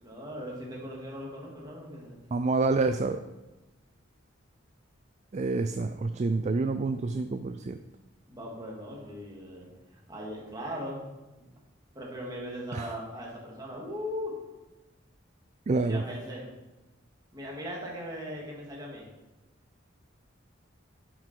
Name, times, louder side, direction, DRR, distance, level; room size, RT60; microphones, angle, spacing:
voice 1, 0.0-2.2 8.3-11.0 11.3-11.5 11.9-14.4 15.8-16.5 17.3-19.1, equal, 20° right, -3 dB, 2.4 m, -39 dB
voice 2, 2.3-3.2 5.3-7.8 12.7-12.9 15.7-16.0, right 3 dB, 35° right, 9 dB, 0.4 m, -27 dB
11.0 x 6.1 x 4.6 m, 1.1 s
head